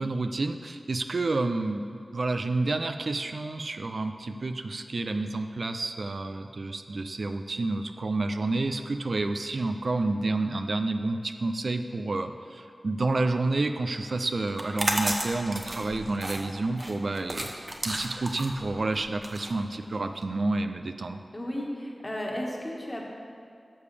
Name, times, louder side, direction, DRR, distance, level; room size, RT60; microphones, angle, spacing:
voice 1, 0.0-17.5 17.8-21.2, right 2 dB, 70° right, 7 dB, 0.4 m, -29 dB
sound 1, 14.5-20.2, right 1 dB, 45° right, 0.9 m, -33 dB
voice 2, 21.3-23.0, left 1 dB, 30° left, -2 dB, 1.7 m, -34 dB
12.0 x 6.7 x 3.4 m, 2.4 s
cardioid pair, 40°, 0 cm